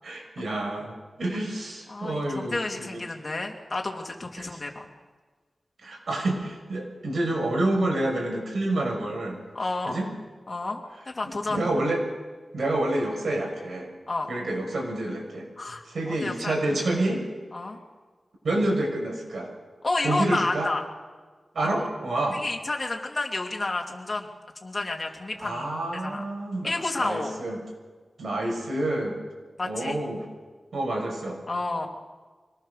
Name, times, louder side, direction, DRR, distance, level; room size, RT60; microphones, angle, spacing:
voice 1, 0.0-3.0 4.4-4.6 5.8-9.4 9.9-10.1 11.5-12.0 12.5-13.9 14.3-15.5 15.9-17.2 18.4-19.5 20.0-20.7 21.5-22.4 25.4-26.7 27.0-27.6 28.2-29.2 29.6-30.2 30.7-31.4, right 1 dB, 85° right, 0 dB, 6.9 m, -28 dB
voice 2, 1.9-4.8 9.5-10.0 10.5-11.6 14.1-14.3 15.6-16.5 17.5-17.8 19.8-20.8 21.8-21.9 22.3-24.3 24.6-25.7 26.0-26.2 26.6-27.3 29.6-30.0 31.5-31.9, left 2 dB, 40° left, 1 dB, 3.3 m, -30 dB
25.0 x 19.0 x 6.8 m, 1.4 s
wide cardioid pair, 85°, 0 cm